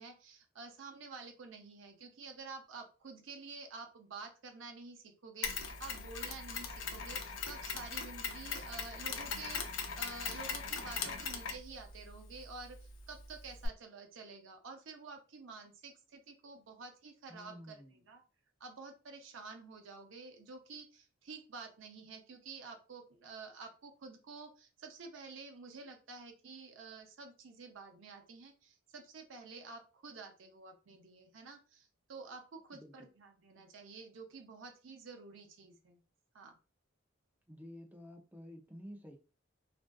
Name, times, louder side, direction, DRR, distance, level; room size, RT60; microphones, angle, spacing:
voice 1, 0.0-17.8 18.1-18.2 18.6-36.0 36.3-36.6, right 4 dB, 70° right, 0.6 m, -50 dB
Mechanisms, 5.4-13.7, left 5 dB, 70° left, 0.5 m, -41 dB
voice 2, 17.3-18.1 32.7-33.1 37.5-39.2, equal, 10° right, 0.4 m, -51 dB
2.5 x 2.3 x 2.2 m
head